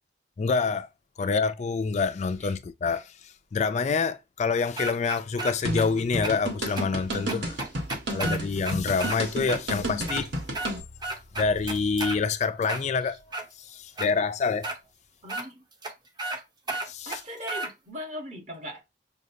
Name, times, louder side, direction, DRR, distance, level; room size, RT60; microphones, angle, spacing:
voice 1, 0.4-0.9 1.2-7.6 8.1-10.3 11.4-13.2 13.6-14.7 16.9-17.2, left 5 dB, 40° left, 0.3 m, -27 dB
sound 1, 4.8-5.8 6.2-6.3 6.8-6.9 7.3-9.2 9.5-9.6 10.0-10.7 11.0-12.2 12.6-13.5 14.0-14.1 14.6-14.8 15.3-15.4 15.8-15.9 16.2-16.4 16.7-17.7, right 2 dB, 25° right, 0.6 m, -33 dB
sound 2, 5.6-10.8, right 1 dB, 90° right, 1.4 m, -32 dB
voice 2, 15.2-15.6 17.0-18.8, equal, 40° right, 1.2 m, -39 dB
6.2 x 2.3 x 2.7 m
head